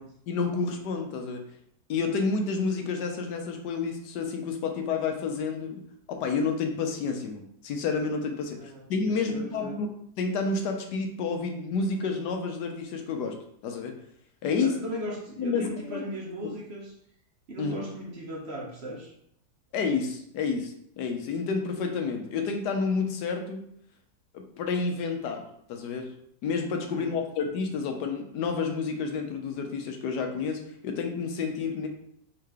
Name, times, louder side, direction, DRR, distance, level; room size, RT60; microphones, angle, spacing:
voice 1, 0.3-1.4 1.9-5.8 6.1-9.9 10.2-13.3 13.6-13.9 14.4-14.7 15.4-16.0 17.6-17.8 19.7-23.7 24.3-25.4 25.7-26.1 26.4-31.9, left 4 dB, 85° left, 4 dB, 1.3 m, -30 dB
voice 2, 8.6-9.8 14.5-16.9 17.5-19.1 26.9-27.2, equal, 50° right, -2 dB, 0.9 m, -38 dB
3.7 x 2.9 x 4.7 m, 0.70 s
omnidirectional pair, 1.7 m